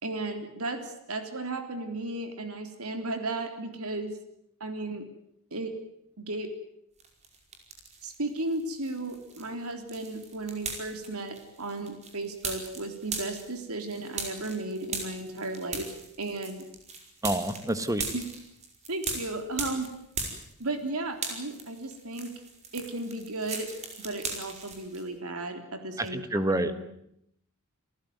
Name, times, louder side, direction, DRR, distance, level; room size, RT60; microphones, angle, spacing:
voice 1, 0.0-4.1 4.6-5.1 5.5-5.7 6.2-6.5 8.0-16.6 18.1-18.3 18.9-19.9 20.6-22.3 22.7-23.7 24.0-27.0, right 2 dB, 75° right, 7 dB, 3.6 m, -35 dB
sound 1, 7.0-8.2 8.5-20.9 21.1-25.0, right 4 dB, 30° right, 5.0 m, -38 dB
voice 2, 17.2-18.0 26.0-26.7, right 1 dB, 15° right, 11 dB, 1.6 m, -28 dB
28.0 x 15.5 x 9.5 m, 0.76 s
head